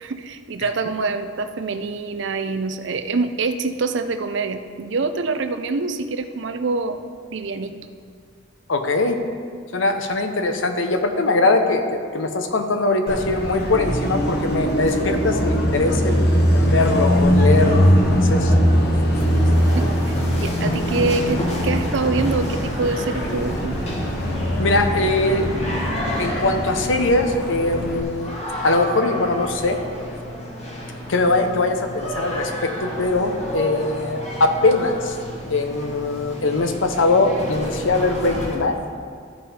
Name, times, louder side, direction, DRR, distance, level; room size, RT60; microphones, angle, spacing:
voice 1, 0.0-7.0 7.3-7.7 19.7-23.8, right 3 dB, 65° right, 9 dB, 0.5 m, -25 dB
voice 2, 8.7-9.2 9.7-11.8 12.1-17.9 18.1-18.5 24.6-25.5 26.2-28.3 28.6-29.8 31.1-35.2 35.5-38.8, left 2 dB, 75° left, 6 dB, 0.8 m, -21 dB
Car passing by, 13.1-28.0, equal, 55° left, 1.2 m, -21 dB
sound 1, 19.1-38.6, equal, 35° left, 1.3 m, -31 dB
13.5 x 5.5 x 4.3 m, 2.1 s
head